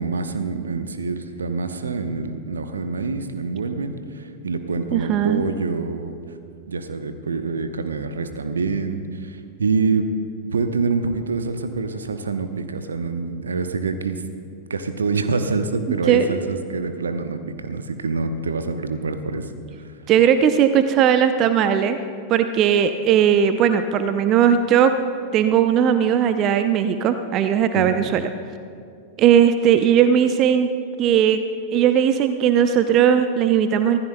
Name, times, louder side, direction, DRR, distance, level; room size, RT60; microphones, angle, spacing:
voice 1, 0.0-6.1 6.7-10.2 10.5-14.2 14.7-19.5 27.7-27.8, right 4 dB, 70° right, 8 dB, 0.9 m, -26 dB
voice 2, 4.9-5.4 16.1-16.4 20.1-22.0 22.3-24.9 25.3-28.3 29.2-30.7 31.0-31.4 31.7-34.0, right 8 dB, 35° right, 9 dB, 0.6 m, -18 dB
24.5 x 16.0 x 2.2 m, 2.3 s
figure-of-eight pair, 90°, 0 cm